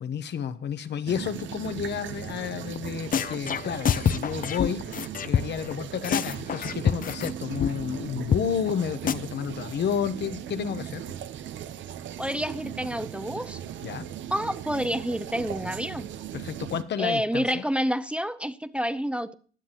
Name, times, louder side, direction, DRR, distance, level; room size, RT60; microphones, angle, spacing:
voice 1, 0.0-4.9 5.3-11.0 13.8-14.1 16.3-17.6, left 8 dB, 60° left, 0.9 m, -31 dB
sound 1, 1.1-16.8, right 10 dB, 70° right, 0.7 m, -38 dB
sound 2, 2.8-2.9 3.1-5.7 6.0-7.3 7.6-7.7 8.0-8.1 8.3-8.4 8.7-8.8 9.1-9.2, left 8 dB, 45° left, 0.6 m, -26 dB
voice 2, 12.2-13.6 14.3-16.1 17.0-19.3, equal, 5° right, 0.6 m, -29 dB
20.5 x 7.4 x 2.9 m
cardioid pair, 90°, 20 cm